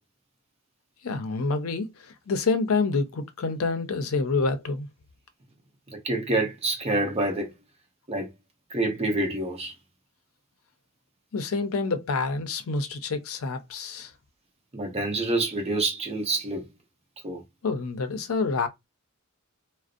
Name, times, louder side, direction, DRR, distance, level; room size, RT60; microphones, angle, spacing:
voice 1, 1.0-4.9 11.3-14.1 17.6-18.7, left 4 dB, 85° left, 0.5 m, -27 dB
voice 2, 5.9-7.5 8.1-8.3 8.7-9.7 14.7-16.7 17.2-17.4, right 2 dB, 30° right, 0.8 m, -27 dB
2.5 x 2.0 x 2.4 m
head